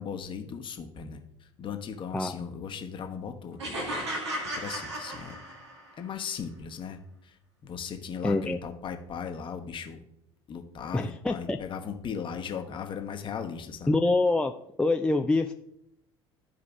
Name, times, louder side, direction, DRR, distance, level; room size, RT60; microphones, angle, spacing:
voice 1, 0.0-4.1 4.5-5.3 6.0-10.0 10.5-14.0, left 7 dB, 35° left, 5 dB, 1.0 m, -38 dB
sound 1, 3.6-5.9, right 1 dB, 80° right, 1.7 m, -35 dB
voice 2, 8.2-8.6 10.9-11.6 13.9-14.5 14.8-15.5, left 2 dB, 5° left, 5 dB, 0.4 m, -25 dB
13.5 x 4.7 x 2.4 m, 0.76 s
figure-of-eight pair, 70°, 14 cm